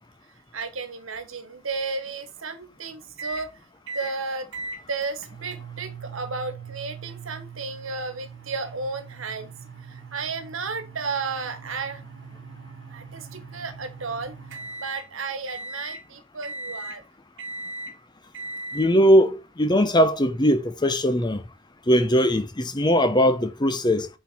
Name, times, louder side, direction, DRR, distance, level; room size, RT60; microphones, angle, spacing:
voice 1, 0.5-3.5 3.9-4.5 4.9-9.5 9.8-12.0 12.9-14.4 14.8-17.0, right 4 dB, 85° right, 1.5 m, -33 dB
sound 1, 3.2-3.5 3.9-4.2 4.5-15.1 15.5-16.0 16.4-17.0 17.4-17.9 18.3-18.9, right 3 dB, 60° right, 1.3 m, -39 dB
voice 2, 18.7-21.4 21.9-24.1, equal, 20° left, 0.8 m, -20 dB
7.6 x 4.5 x 4.3 m
head